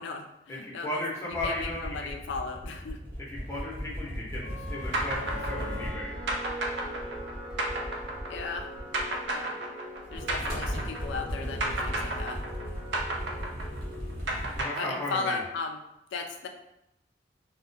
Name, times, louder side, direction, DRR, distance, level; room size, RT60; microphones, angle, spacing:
voice 1, 0.0-3.0 3.5-3.7 8.3-8.7 9.3-9.5 10.1-12.4 14.8-15.8 16.1-16.5, left 4 dB, 90° left, 4 dB, 0.3 m, -36 dB
voice 2, 0.6-1.9 3.3-4.4 4.7-6.2 14.6-15.4, left 1 dB, 15° left, -5 dB, 0.6 m, -35 dB
sound 1, 1.3-9.4 10.0-14.6, equal, 55° right, 0.8 m, -38 dB
sound 2, 4.4-14.6, equal, 45° left, 0.7 m, -42 dB
sound 3, 4.9-11.3 11.6-15.5, right 2 dB, 75° right, 0.4 m, -32 dB
2.3 x 2.1 x 2.6 m, 0.82 s
head